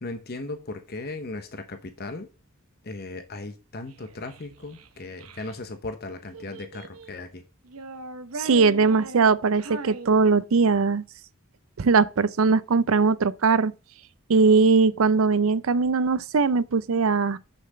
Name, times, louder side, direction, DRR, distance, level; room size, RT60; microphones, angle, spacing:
voice 1, 0.0-2.3 2.8-7.4, left 2 dB, 45° left, 0.9 m, -37 dB
Child speech kid speaking, 3.9-5.6 6.3-7.2 7.6-10.8, right 3 dB, 85° right, 1.0 m, -40 dB
voice 2, 8.4-11.0 11.8-13.7 14.3-17.4, right 4 dB, 65° right, 0.5 m, -20 dB
6.4 x 5.9 x 6.5 m
head